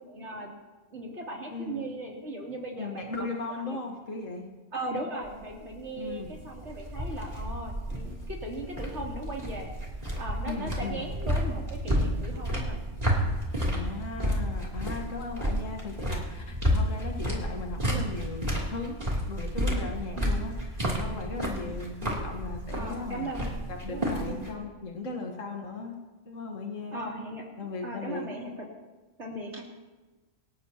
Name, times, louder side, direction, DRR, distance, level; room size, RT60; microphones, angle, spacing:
voice 1, 0.1-0.5 0.9-3.3 3.7-3.8 4.7-9.7 10.2-12.8 20.2-20.4 22.7-23.5 23.9-24.4 26.9-28.7 29.2-29.6, right 1 dB, 65° right, -2 dB, 3.4 m, -38 dB
voice 2, 1.5-1.8 2.8-4.5 6.0-6.3 10.4-11.1 13.7-23.3 23.7-26.0 26.3-27.1 27.6-28.3, left 3 dB, 85° left, 2 dB, 1.8 m, -37 dB
sound 1, 5.2-24.5, equal, 30° right, 3.1 m, -31 dB
26.5 x 12.5 x 2.9 m, 1.2 s
omnidirectional pair, 1.3 m